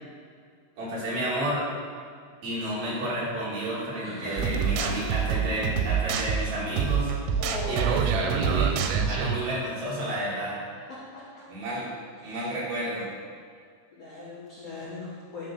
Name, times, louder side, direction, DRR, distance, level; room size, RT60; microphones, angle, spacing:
voice 1, 0.8-1.6 2.4-7.1 7.7-8.8 9.1-10.6 11.5-11.9 12.2-13.1, right 1 dB, 55° right, -8 dB, 3.7 m, -31 dB
voice 2, 4.0-4.9 7.4-8.0 10.9-11.2 12.2-12.5 13.9-15.5, left 2 dB, 80° left, -8 dB, 1.4 m, -38 dB
sound 1, 4.4-9.4, right 7 dB, 90° right, 3.1 m, -26 dB
10.0 x 3.8 x 6.4 m, 2.1 s
omnidirectional pair, 5.3 m